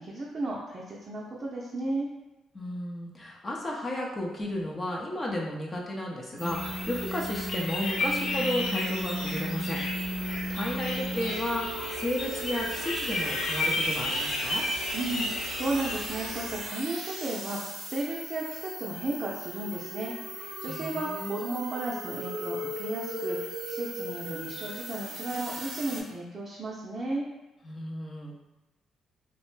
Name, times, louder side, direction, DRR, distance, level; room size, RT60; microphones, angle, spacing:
voice 1, 0.0-2.1 14.9-27.3, right 2 dB, 35° right, -4 dB, 0.5 m, -34 dB
voice 2, 2.5-14.6 20.7-21.3 27.6-28.4, left 1 dB, 30° left, -2 dB, 0.6 m, -33 dB
sound 1, 6.4-16.6, left 2 dB, 85° left, 0.6 m, -33 dB
sound 2, 6.4-26.0, right 1 dB, 80° right, 0.7 m, -37 dB
3.1 x 2.1 x 3.1 m, 1.0 s
cardioid pair, 90°, 0 cm